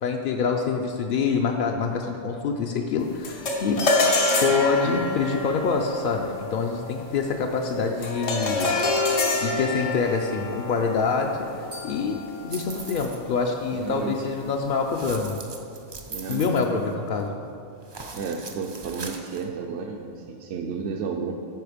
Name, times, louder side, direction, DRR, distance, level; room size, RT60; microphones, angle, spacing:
voice 1, 0.0-3.8 4.4-8.7 9.4-11.3 11.8-12.2 12.4-15.4 16.3-17.3, left 5 dB, 60° left, 2 dB, 0.5 m, -25 dB
sound 1, 3.2-12.7, left 2 dB, 85° left, 1.3 m, -27 dB
sound 2, 11.7-14.0, left 3 dB, 90° right, 2.2 m, -47 dB
sound 3, 12.5-13.3 14.9-17.3 17.8-19.5, right 3 dB, 40° right, 0.3 m, -40 dB
voice 2, 13.7-14.3 16.1-16.9 18.1-21.3, right 5 dB, 70° right, 1 dB, 0.8 m, -32 dB
9.3 x 5.0 x 5.0 m, 2.5 s
omnidirectional pair, 1.3 m